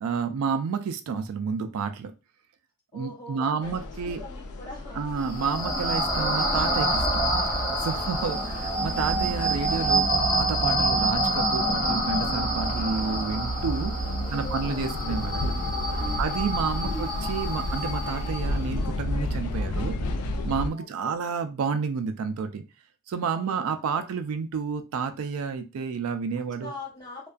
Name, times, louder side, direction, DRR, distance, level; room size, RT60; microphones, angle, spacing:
voice 1, 0.0-2.1 2.9-4.2 4.9-13.9 14.3-15.6 16.2-20.0 20.4-22.6 23.1-26.7, right 5 dB, 70° right, 8 dB, 0.3 m, -30 dB
voice 2, 2.9-5.6 7.8-8.5 14.2-14.8 16.0-16.5 16.8-17.1 20.7-21.2 23.3-24.1 26.4-27.3, left 1 dB, 20° left, -2 dB, 0.8 m, -43 dB
sound 1, 3.6-20.7, left 2 dB, 85° left, 0.3 m, -33 dB
sound 2, 5.2-18.6, right 1 dB, 35° left, 1.2 m, -27 dB
sound 3, 7.0-16.1, right 3 dB, 85° right, 0.7 m, -35 dB
2.4 x 2.2 x 2.3 m, 0.29 s
head